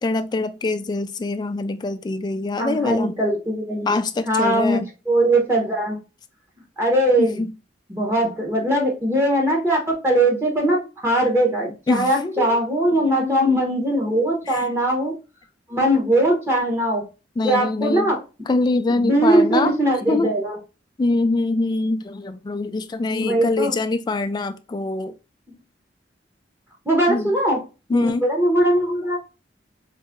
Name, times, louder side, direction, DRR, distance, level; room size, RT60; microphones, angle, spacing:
voice 1, 0.0-3.1 3.9-4.9 7.2-7.5 11.9-12.6 13.0-13.6 14.5-14.7 17.4-18.1 18.5-19.7 20.1-20.3 21.0-25.1 27.1-27.3 27.9-28.3, left 2 dB, 25° left, 0.3 m, -24 dB
voice 2, 2.6-3.9 4.2-6.0 6.8-7.4 7.9-15.1 15.7-17.1 17.4-18.2 19.0-20.6 23.2-23.7 26.9-27.6 27.9-29.2, right 1 dB, 15° right, 0.8 m, -20 dB
3.9 x 2.6 x 2.5 m
head